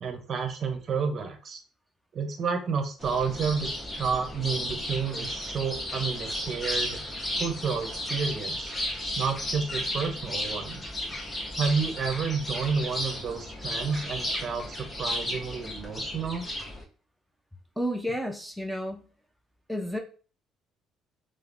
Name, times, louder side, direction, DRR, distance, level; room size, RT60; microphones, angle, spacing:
voice 1, 0.0-1.6 2.1-3.7 4.0-7.1 7.4-8.7 9.1-10.8 11.6-16.5, right 5 dB, 50° right, 6 dB, 0.6 m, -30 dB
sound 1, 3.0-16.8, left 1 dB, 20° left, 0.9 m, -34 dB
voice 2, 17.8-19.0 19.7-20.0, equal, ahead, 3 dB, 0.4 m, -31 dB
3.0 x 2.0 x 2.4 m, 0.38 s
supercardioid pair, 80°, 0 cm